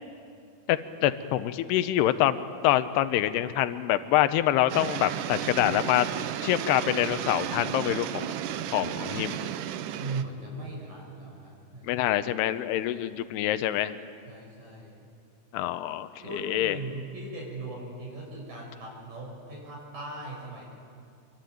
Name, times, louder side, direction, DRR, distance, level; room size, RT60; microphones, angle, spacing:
voice 1, 0.7-2.4 2.6-6.1 6.4-8.3 8.7-9.4 11.8-13.9 15.5-16.1 16.4-16.8, left 13 dB, 85° left, 11 dB, 3.0 m, -25 dB
sound 1, 4.7-10.2, right 10 dB, 75° right, 2.0 m, -33 dB
voice 2, 10.0-12.1 12.8-12.9 14.3-15.0 16.2-20.7, right 2 dB, 55° right, -2 dB, 8.1 m, -39 dB
27.0 x 23.5 x 9.4 m, 2.3 s
omnidirectional pair, 4.6 m